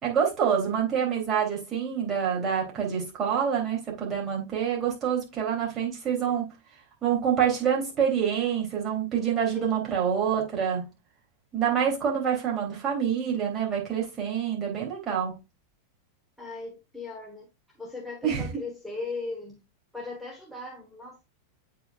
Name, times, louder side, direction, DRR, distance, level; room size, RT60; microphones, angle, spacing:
voice 1, 0.0-6.5 7.0-10.9 11.5-15.4 18.2-18.5, right 8 dB, 25° right, 3.2 m, -26 dB
voice 2, 6.1-6.4 9.5-9.8 16.4-17.5 17.8-19.6 19.9-21.2, left 3 dB, ahead, 1.4 m, -38 dB
8.3 x 5.0 x 2.5 m
figure-of-eight pair, 90°, 0 cm